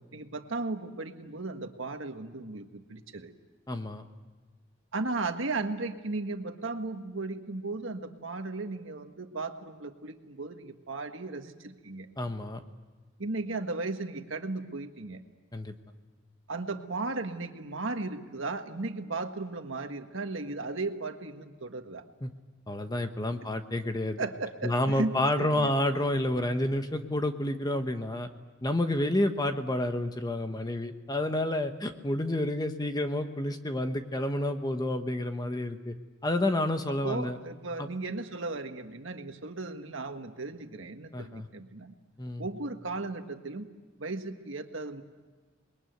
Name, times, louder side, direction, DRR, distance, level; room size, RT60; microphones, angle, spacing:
voice 1, 0.1-3.3 4.9-12.1 13.2-15.2 16.5-22.0 24.2-25.7 37.0-41.9 42.4-43.7 44.0-45.0, right 3 dB, 75° right, 6 dB, 1.6 m, -36 dB
voice 2, 3.7-4.0 12.2-12.6 15.5-15.7 22.2-22.3 22.7-24.2 24.6-28.3 28.6-35.9 36.2-37.4 37.8-37.9 41.1-41.5 42.2-42.5, left 1 dB, 20° left, 7 dB, 1.1 m, -29 dB
27.0 x 21.5 x 9.4 m, 1.3 s
head